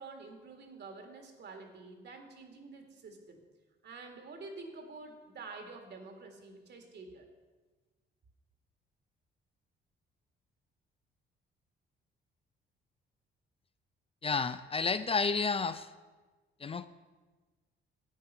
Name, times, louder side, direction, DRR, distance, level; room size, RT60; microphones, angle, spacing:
voice 1, 0.0-3.4 3.8-7.3, right 3 dB, 60° right, 5 dB, 2.0 m, -48 dB
voice 2, 14.2-15.9 16.6-16.9, left 4 dB, 30° left, 12 dB, 0.4 m, -31 dB
10.5 x 8.7 x 5.6 m, 1.3 s
cardioid pair, 90°, 20 cm